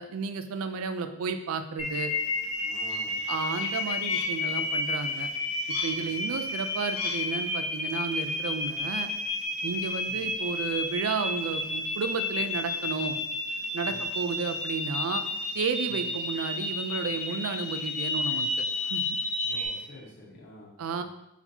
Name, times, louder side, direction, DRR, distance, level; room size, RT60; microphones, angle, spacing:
voice 1, 0.0-2.1 3.3-5.3 5.8-9.1 9.6-13.2 13.7-15.2 15.5-18.5 18.9-19.0 20.8-21.0, right 5 dB, 80° right, 9 dB, 0.4 m, -32 dB
sound 1, 1.8-19.8, left 3 dB, 85° left, 1.1 m, -45 dB
sound 2, 1.8-19.7, left 3 dB, 30° left, 0.7 m, -31 dB
voice 2, 2.6-3.2 5.9-6.1 10.1-10.3 13.8-14.0 15.9-16.1 19.4-21.0, left 2 dB, 50° left, -5 dB, 1.0 m, -49 dB
4.3 x 4.0 x 2.8 m, 0.85 s
head